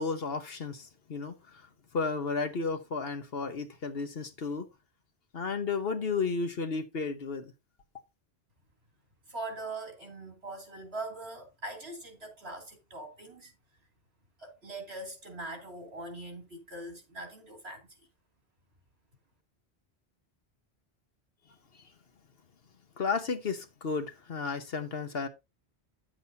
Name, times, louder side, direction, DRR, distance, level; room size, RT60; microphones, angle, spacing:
voice 1, 0.0-4.7 5.3-7.5 21.7-21.9 23.0-25.3, left 4 dB, 65° left, 1.3 m, -33 dB
voice 2, 9.3-13.5 14.4-17.9, right 2 dB, 70° right, 3.2 m, -42 dB
10.0 x 7.7 x 2.8 m
omnidirectional pair, 1.1 m